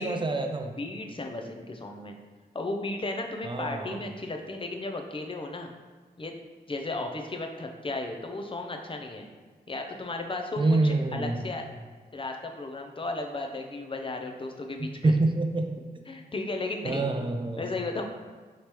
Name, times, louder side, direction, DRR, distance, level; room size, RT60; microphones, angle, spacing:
voice 1, 0.0-0.7 3.4-4.0 10.6-11.4 15.0-15.6 16.8-17.7, right 2 dB, 30° right, 4 dB, 0.4 m, -26 dB
voice 2, 0.8-2.1 2.5-5.7 6.2-6.3 6.7-9.2 9.7-11.6 12.1-15.1 16.1-17.1 17.6-18.0, left 2 dB, 30° left, 4 dB, 0.5 m, -35 dB
5.0 x 3.1 x 2.9 m, 1.4 s
wide cardioid pair, 95°, 17 cm